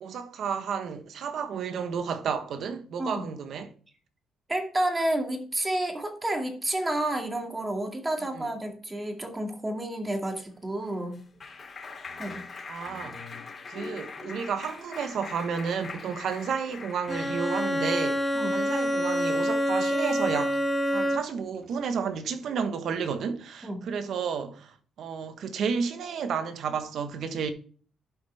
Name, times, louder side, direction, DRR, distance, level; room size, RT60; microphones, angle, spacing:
voice 1, 0.0-3.7 8.3-8.5 12.7-13.2 13.7-20.6 20.9-27.5, right 6 dB, 70° right, 1.2 m, -32 dB
voice 2, 4.5-11.2 12.2-12.5 18.4-18.5 23.6-23.9, right 1 dB, 20° right, 2.2 m, -30 dB
Clapping, 10.6-17.8, left 4 dB, 40° left, 2.8 m, -42 dB
Bowed string instrument, 17.1-21.5, equal, 10° left, 1.2 m, -27 dB
12.0 x 5.4 x 3.4 m
cardioid pair, 90°, 0 cm